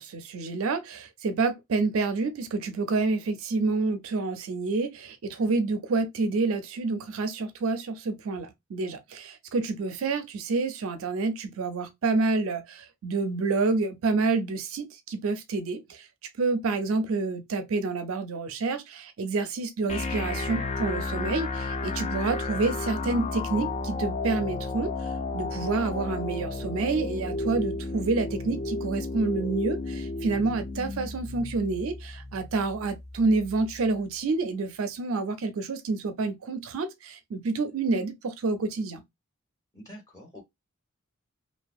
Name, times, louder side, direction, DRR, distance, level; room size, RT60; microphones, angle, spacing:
voice 1, 0.0-16.1 16.4-39.0, right 3 dB, 70° right, 0.4 m, -28 dB
sound 1, 19.9-33.9, left 3 dB, 30° left, 0.3 m, -33 dB
voice 2, 39.7-40.4, equal, 15° left, 1.5 m, -47 dB
2.6 x 2.3 x 2.3 m
head